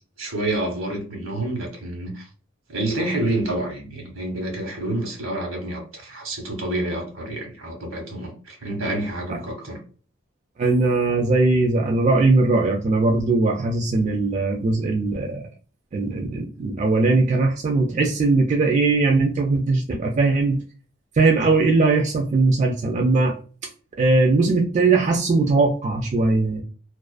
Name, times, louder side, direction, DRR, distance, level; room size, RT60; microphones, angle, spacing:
voice 1, 0.2-2.3 2.7-9.8, right 1 dB, 80° right, 1.0 m, -28 dB
voice 2, 10.6-15.5 15.9-20.6 21.1-23.3 24.0-26.6, right 3 dB, 35° right, 0.3 m, -20 dB
2.4 x 2.3 x 2.3 m
head